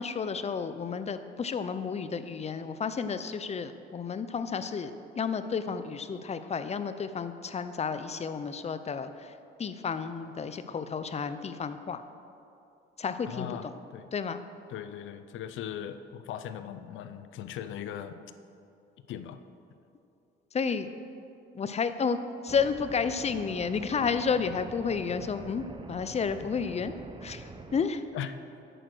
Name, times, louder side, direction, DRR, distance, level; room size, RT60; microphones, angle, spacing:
voice 1, 0.0-12.0 13.0-13.7 14.1-14.4 20.5-20.9 21.5-22.2 22.4-27.0 27.2-28.0, left 6 dB, 35° left, 11 dB, 0.5 m, -31 dB
voice 2, 13.3-13.7 13.9-14.1 14.7-18.2 19.1-19.4 28.1-28.3, left 9 dB, 80° left, 11 dB, 0.6 m, -38 dB
sound 1, 22.5-27.8, right 3 dB, 25° right, 0.7 m, -45 dB
9.0 x 6.4 x 6.1 m, 2.7 s
cardioid pair, 90°, 20 cm